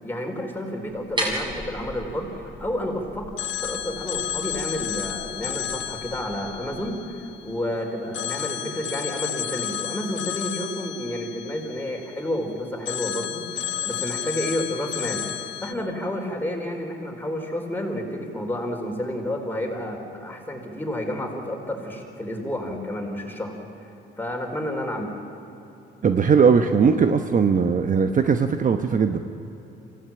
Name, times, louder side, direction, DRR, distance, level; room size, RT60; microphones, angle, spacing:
voice 1, 0.0-3.3 3.6-15.2 15.6-23.5 24.2-25.1 26.5-26.6, left 1 dB, 10° left, 1 dB, 4.5 m, -30 dB
sound 1, 0.9-6.8, right 1 dB, 20° right, 6.8 m, -36 dB
Telephone, 3.4-7.7 8.1-12.4 12.9-15.7, left 10 dB, 70° left, 1.4 m, -32 dB
voice 2, 26.0-29.2, right 6 dB, 40° right, 7 dB, 1.0 m, -19 dB
25.5 x 16.0 x 8.9 m, 3.0 s
cardioid pair, 105°, 20 cm